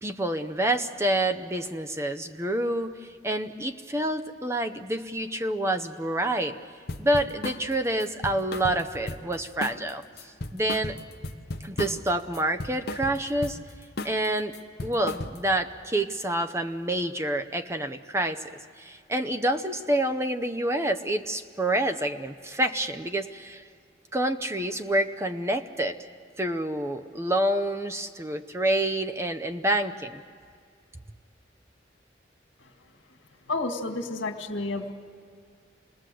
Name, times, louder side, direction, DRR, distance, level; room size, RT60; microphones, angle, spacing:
voice 1, 0.0-6.6 7.0-11.0 11.6-13.6 14.0-14.5 14.8-18.5 18.8-23.6 24.1-26.0 26.4-30.2, right 1 dB, 15° right, 6 dB, 0.7 m, -28 dB
sound 1, 6.9-7.6 8.0-9.3 9.6-9.9 10.2-12.1 12.3-13.6 14.0-14.2 14.5-15.6, left 2 dB, 55° left, 0.8 m, -35 dB
voice 2, 33.5-34.9, left 2 dB, 85° left, 6 dB, 1.9 m, -30 dB
27.5 x 20.0 x 7.7 m, 2.2 s
head